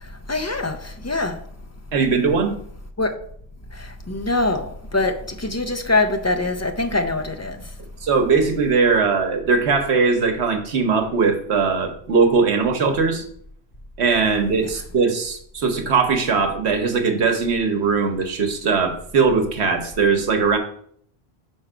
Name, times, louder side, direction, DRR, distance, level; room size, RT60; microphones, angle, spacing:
voice 1, 0.0-1.4 3.0-3.1 3.7-7.6 14.6-14.8, left 2 dB, 25° left, 0.4 m, -24 dB
voice 2, 1.9-2.6 8.0-13.2 14.0-20.6, right 4 dB, 90° right, 1.3 m, -20 dB
6.2 x 4.5 x 4.9 m
omnidirectional pair, 1.1 m